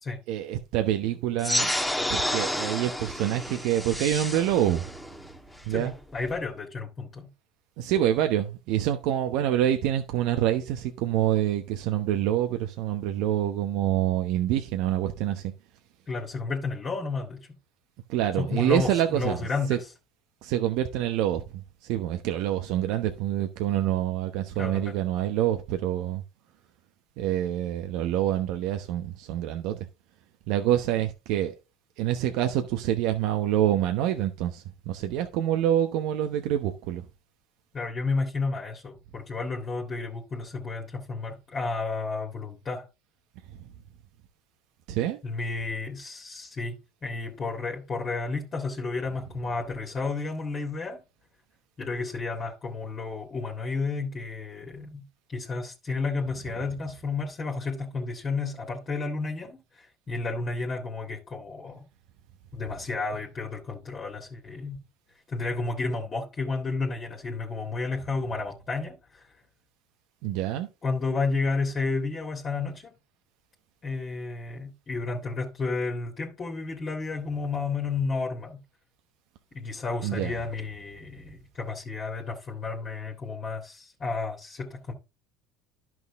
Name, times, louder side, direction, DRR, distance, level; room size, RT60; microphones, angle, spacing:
voice 1, 0.3-1.7 2.1-4.9 5.7-5.9 7.8-15.5 18.1-19.8 20.4-21.4 21.8-26.2 27.2-29.9 30.5-31.5 32.0-37.0 43.6-43.7 44.9-45.2 70.2-70.7 80.0-80.4, right 12 dB, 70° right, 0.9 m, -26 dB
sound 1, 1.4-6.4, left 1 dB, 5° left, 1.3 m, -30 dB
voice 2, 5.7-7.3 16.1-17.5 18.4-19.8 24.6-25.0 37.7-42.9 45.2-51.0 51.8-61.9 62.5-64.8 65.3-69.3 70.8-72.9 73.8-78.6 79.5-84.9, left 3 dB, 35° left, 2.0 m, -32 dB
10.5 x 6.1 x 3.6 m
hypercardioid pair, 85°, 0 cm